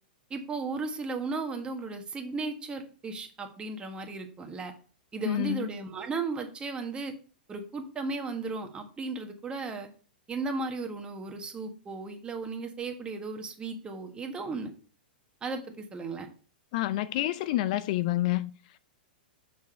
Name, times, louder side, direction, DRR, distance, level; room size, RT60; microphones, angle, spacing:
voice 1, 0.3-4.7 5.1-7.1 7.5-9.9 10.3-14.7 15.4-16.3, right 3 dB, 20° right, 1.4 m, -35 dB
voice 2, 5.3-5.7 16.7-18.5, left 15 dB, 50° left, 0.4 m, -28 dB
6.3 x 6.1 x 4.4 m
hypercardioid pair, 105°, 5 cm